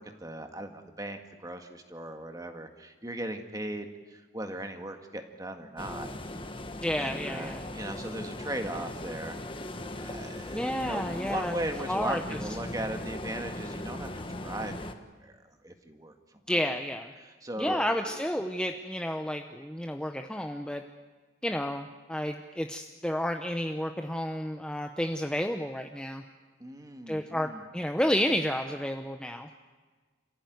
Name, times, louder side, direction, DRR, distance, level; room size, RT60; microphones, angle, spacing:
voice 1, 0.0-6.1 7.0-9.4 9.9-14.9 15.2-16.4 17.2-18.2 26.6-27.6, right 1 dB, 20° right, 5 dB, 1.9 m, -38 dB
sound 1, 5.8-14.9, left 1 dB, 25° left, 1.3 m, -39 dB
voice 2, 6.8-7.6 10.5-11.6 11.9-12.4 16.5-17.1 17.6-20.8 21.4-26.2 27.1-29.5, equal, 5° left, 5 dB, 0.8 m, -31 dB
28.0 x 15.5 x 9.4 m, 1.4 s
head